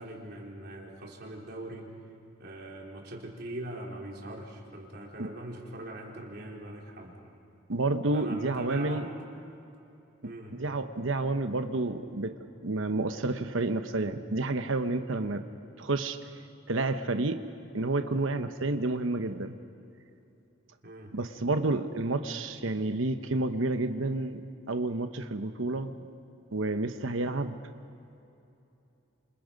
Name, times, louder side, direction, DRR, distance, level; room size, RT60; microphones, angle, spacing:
voice 1, 0.0-1.9 2.4-7.1 8.1-9.3 10.2-10.6 20.8-21.1, right 1 dB, 50° right, -2 dB, 4.0 m, -41 dB
voice 2, 7.7-9.1 10.5-12.3 12.6-15.4 15.8-16.2 16.7-17.4 17.7-19.6 21.1-24.4 24.7-26.0 26.5-27.6, right 2 dB, 70° right, 8 dB, 0.9 m, -30 dB
28.0 x 27.0 x 5.2 m, 2.8 s
head